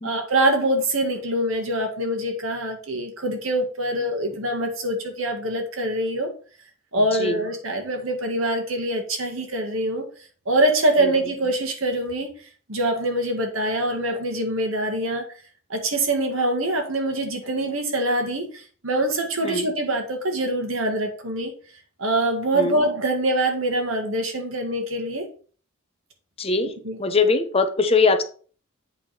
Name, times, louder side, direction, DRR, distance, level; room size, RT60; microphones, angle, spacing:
voice 1, 0.0-6.3 6.9-10.0 10.5-12.3 12.7-15.3 15.7-21.5 22.0-25.3 26.8-27.0, right 1 dB, 90° right, 3 dB, 1.9 m, -24 dB
voice 2, 26.4-26.7 27.0-28.2, left 4 dB, 30° left, 8 dB, 0.8 m, -21 dB
8.3 x 3.7 x 5.9 m, 0.42 s
head